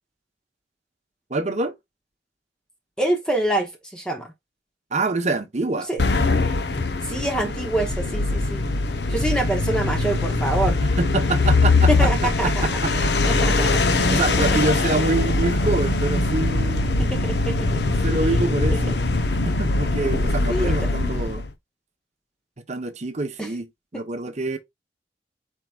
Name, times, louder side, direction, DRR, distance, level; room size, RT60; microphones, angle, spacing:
voice 1, 1.3-1.7 4.9-5.9 10.8-13.7 14.0-17.0 18.0-19.0 19.4-21.5 22.7-23.7 23.9-24.6, right 2 dB, 40° right, 0.9 m, -26 dB
voice 2, 3.0-4.3 5.8-6.0 7.0-8.6 9.1-10.8 11.9-14.6 17.0-17.9 18.3-18.4 18.9-19.0 20.5-20.8 23.4-23.5 23.9-24.0, right 1 dB, 5° left, 0.8 m, -26 dB
sound 1, 6.0-21.5, left 2 dB, 70° left, 0.9 m, -22 dB
4.6 x 4.6 x 2.3 m
head